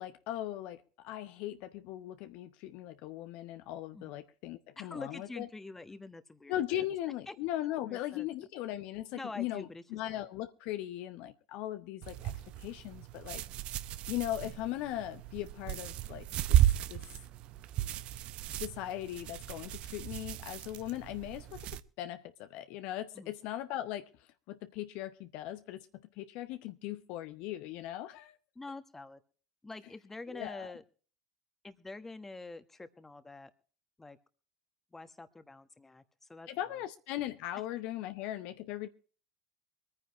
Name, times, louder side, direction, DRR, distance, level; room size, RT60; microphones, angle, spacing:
voice 1, 0.0-5.5 6.5-12.3 12.6-13.4 14.1-16.6 16.9-17.0 18.6-24.1 24.5-28.4 30.3-30.7 36.5-38.9, left 13 dB, 55° left, 0.8 m, -39 dB
voice 2, 4.8-6.9 7.3-7.4 7.8-8.3 9.1-9.8 10.1-10.2 17.8-17.9 23.1-23.3 28.5-29.2 29.6-30.8 31.6-33.5 34.0-34.2 34.9-36.8, left 3 dB, 15° left, 1.3 m, -46 dB
sound 1, 12.0-21.8, right 13 dB, 50° right, 0.7 m, -34 dB
24.5 x 9.8 x 3.1 m
figure-of-eight pair, 75°, 2 cm